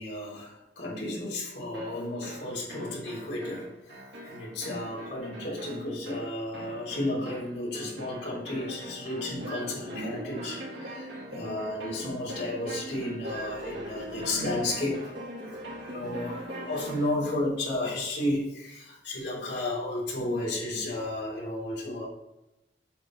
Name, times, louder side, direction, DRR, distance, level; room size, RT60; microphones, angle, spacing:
voice 1, 0.0-4.0 4.2-15.1 15.8-22.1, left 1 dB, 75° left, -5 dB, 3.1 m, -33 dB
sound 1, 1.7-17.2, right 1 dB, 75° right, 2.4 m, -41 dB
8.1 x 6.1 x 3.7 m, 0.93 s
head